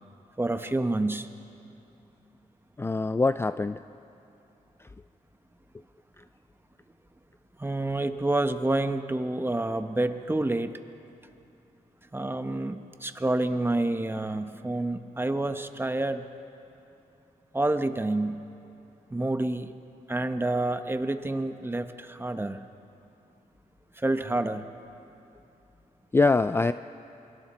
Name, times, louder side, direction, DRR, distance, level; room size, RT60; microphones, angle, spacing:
voice 1, 0.4-1.3 7.6-10.7 12.1-16.2 17.5-18.5 19.1-19.7 20.1-22.6 23.9-24.7, right 2 dB, 15° right, 8 dB, 1.1 m, -28 dB
voice 2, 2.8-3.8 6.2-6.3 26.1-26.7, left 3 dB, 15° left, 11 dB, 0.4 m, -23 dB
27.5 x 24.0 x 4.4 m, 2.8 s
cardioid pair, 75°, 14 cm